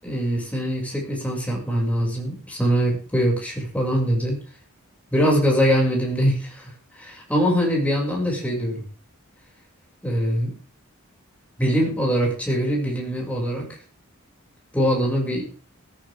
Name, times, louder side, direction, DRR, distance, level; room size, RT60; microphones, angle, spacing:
voice 1, 0.0-4.4 5.1-8.8 10.0-10.5 11.6-13.7 14.7-15.4, equal, 5° left, -2 dB, 6.7 m, -23 dB
20.0 x 14.5 x 3.7 m, 0.37 s
head